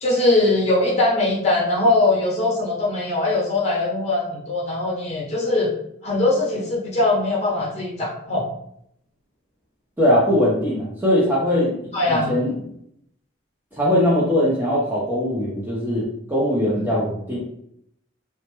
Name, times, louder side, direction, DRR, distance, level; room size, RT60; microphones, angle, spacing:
voice 1, 0.0-5.7 6.0-8.5 11.9-12.3 16.7-16.8, left 2 dB, 35° left, -5 dB, 0.7 m, -21 dB
voice 2, 10.0-12.5 13.7-17.4, left 1 dB, 10° right, -6 dB, 0.4 m, -21 dB
2.1 x 2.0 x 2.9 m, 0.73 s
head